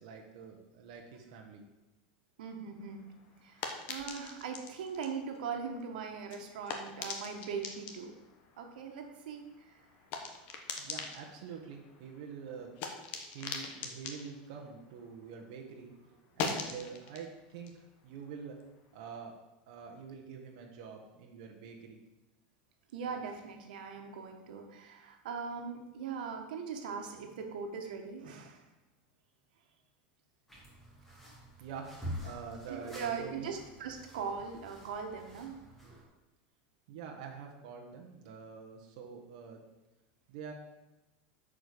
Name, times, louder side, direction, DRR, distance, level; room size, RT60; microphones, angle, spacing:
voice 1, 0.0-1.6 10.8-12.7 13.3-18.6 18.9-19.3 19.7-22.0 31.6-33.5 33.8-33.9 36.9-39.6 40.3-40.5, right 6 dB, 50° right, 1 dB, 1.2 m, -46 dB
voice 2, 2.4-3.1 3.4-8.2 8.6-9.7 22.9-28.6 32.7-35.6, right 6 dB, 85° right, 4 dB, 1.5 m, -40 dB
sound 1, 2.8-15.6 15.8-19.1, left 5 dB, 35° left, 1.1 m, -44 dB
sound 2, 30.5-36.0, equal, 5° left, 1.6 m, -47 dB
8.8 x 5.1 x 6.7 m, 1.1 s
supercardioid pair, 175°, 5 cm